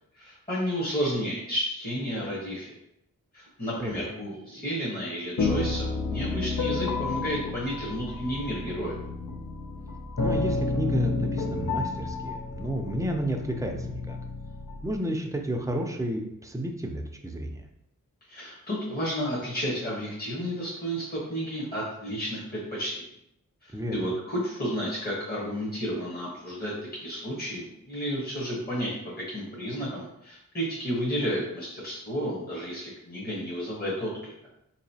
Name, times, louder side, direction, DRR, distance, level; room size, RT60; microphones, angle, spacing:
voice 1, 0.2-2.7 3.3-8.9 18.3-23.1 23.6-34.3, equal, 25° left, -6 dB, 1.1 m, -32 dB
voice 2, 3.8-4.2 10.2-14.2 14.8-17.7 23.7-24.1, right 1 dB, 10° right, 3 dB, 0.5 m, -32 dB
sound 1, 5.4-15.0, left 3 dB, 60° left, 0.5 m, -31 dB
4.0 x 2.9 x 2.7 m, 0.79 s
wide cardioid pair, 65°, 34 cm